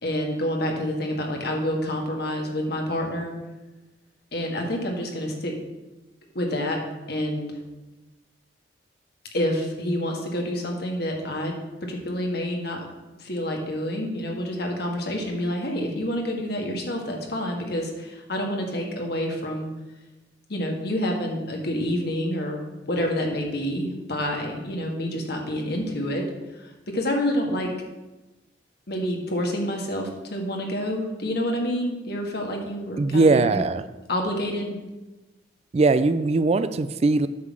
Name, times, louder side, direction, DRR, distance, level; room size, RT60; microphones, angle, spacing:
voice 1, 0.0-3.3 4.3-5.5 6.3-6.8 7.1-7.5 9.3-11.5 11.8-12.8 13.2-19.7 20.5-22.6 22.9-26.2 26.5-27.7 28.9-33.6 34.1-34.8, equal, 60° left, 1 dB, 1.7 m, -28 dB
voice 2, 33.0-33.8 35.7-37.3, right 3 dB, 35° right, 12 dB, 0.3 m, -20 dB
9.4 x 3.9 x 7.3 m, 1.1 s
head